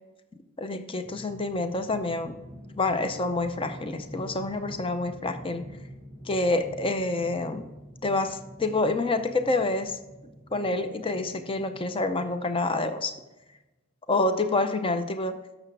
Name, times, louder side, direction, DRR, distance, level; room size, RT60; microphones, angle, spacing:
voice 1, 0.6-2.4 2.8-5.7 6.3-7.7 8.0-10.0 10.5-13.1 14.1-15.4, left 2 dB, 25° left, 9 dB, 0.6 m, -27 dB
sound 1, 1.0-13.3, equal, 40° left, 3.4 m, -46 dB
10.5 x 7.0 x 3.3 m, 1.1 s
head